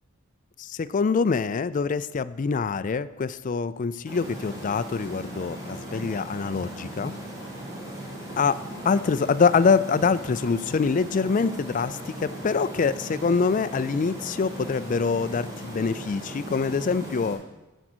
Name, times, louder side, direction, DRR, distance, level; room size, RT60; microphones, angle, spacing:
voice 1, 0.6-7.1 8.4-17.4, left 5 dB, 40° left, 14 dB, 0.4 m, -25 dB
sound 1, 4.1-17.3, right 1 dB, 15° right, 2.6 m, -38 dB
14.0 x 5.0 x 6.2 m, 1.1 s
head